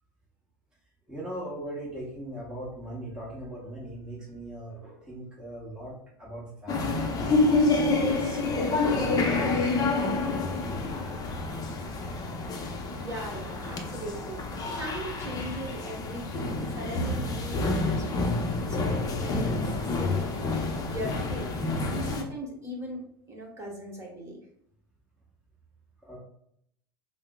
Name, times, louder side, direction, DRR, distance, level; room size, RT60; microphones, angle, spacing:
voice 1, 1.1-7.3 7.9-10.1 26.0-26.2, right 1 dB, 5° right, -6 dB, 1.0 m, -40 dB
sound 1, 6.7-22.2, left 3 dB, 30° left, 0.6 m, -28 dB
voice 2, 13.0-14.4 14.7-21.6 21.9-23.0 23.3-24.4, equal, 20° right, -1 dB, 1.1 m, -39 dB
5.4 x 2.0 x 2.2 m, 0.72 s
hypercardioid pair, 85°, 13 cm